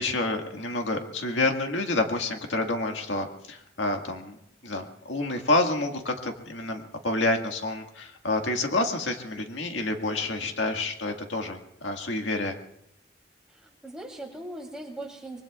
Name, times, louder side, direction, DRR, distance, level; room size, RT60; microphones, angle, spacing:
voice 1, 0.0-4.4 4.6-12.6, left 2 dB, 85° left, 3 dB, 1.9 m, -28 dB
voice 2, 13.5-15.4, right 1 dB, 5° right, -1 dB, 3.0 m, -40 dB
25.0 x 23.5 x 2.4 m, 0.78 s
head